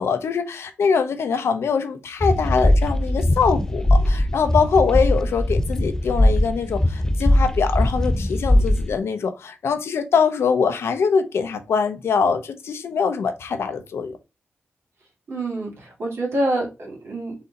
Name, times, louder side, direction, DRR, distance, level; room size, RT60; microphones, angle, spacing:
voice 1, 0.0-14.2, left 5 dB, 85° left, 0.7 m, -23 dB
sound 1, 2.2-9.0, left 1 dB, 15° left, 0.3 m, -20 dB
voice 2, 15.3-17.3, right 1 dB, 75° right, 2.1 m, -26 dB
4.3 x 2.7 x 3.8 m
cardioid pair, 75°, 4 cm